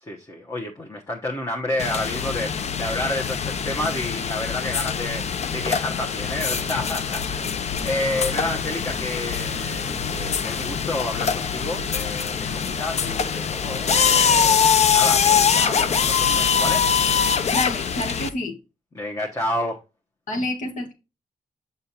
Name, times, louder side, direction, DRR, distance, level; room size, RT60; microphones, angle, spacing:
voice 1, 0.0-5.2 5.5-7.5 7.8-14.6 14.9-16.8 18.9-19.8, left 1 dB, 25° left, 1.1 m, -30 dB
sound 1, 1.8-18.3, left 7 dB, 55° left, 0.5 m, -23 dB
voice 2, 17.5-18.6 20.3-20.9, left 2 dB, 80° left, 1.7 m, -28 dB
6.6 x 5.6 x 2.8 m
cardioid pair, 100°, 13 cm